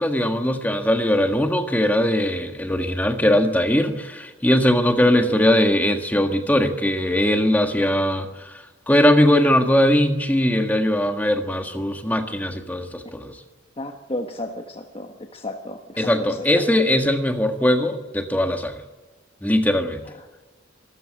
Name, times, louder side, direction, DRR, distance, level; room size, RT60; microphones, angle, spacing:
voice 1, 0.0-13.4 16.0-18.8 19.4-20.1, left 1 dB, 10° left, 5 dB, 1.5 m, -20 dB
voice 2, 13.8-16.5, left 1 dB, 30° left, 4 dB, 1.3 m, -33 dB
24.5 x 14.0 x 9.6 m, 1.3 s
head